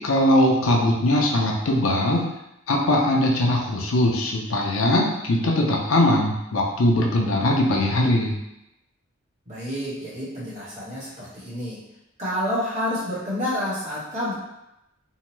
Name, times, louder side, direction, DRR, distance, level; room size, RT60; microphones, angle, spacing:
voice 1, 0.0-2.2 2.7-8.4, left 1 dB, 90° left, -1 dB, 0.6 m, -21 dB
voice 2, 9.5-11.8 12.2-14.3, left 1 dB, 35° right, -8 dB, 1.2 m, -29 dB
2.7 x 2.2 x 3.1 m, 0.87 s
head